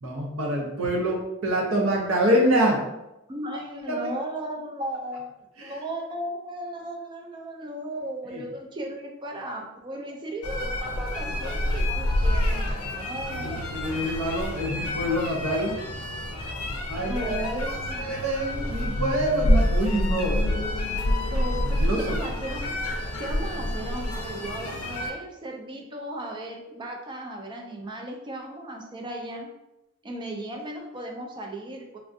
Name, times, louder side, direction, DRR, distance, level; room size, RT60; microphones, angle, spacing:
voice 1, 0.0-2.8 3.5-3.6 3.9-4.1 5.6-5.7 8.3-8.4 13.3-15.8 16.9-17.3 17.7-20.6 21.5-22.2, equal, 65° right, -1 dB, 0.6 m, -26 dB
voice 2, 3.3-13.8 17.0-18.2 21.3-22.7 23.2-29.5 30.0-32.0, right 1 dB, 20° right, 1 dB, 0.4 m, -36 dB
sound 1, 10.4-25.1, left 1 dB, 75° left, 0.5 m, -27 dB
3.3 x 2.4 x 2.6 m, 0.93 s
head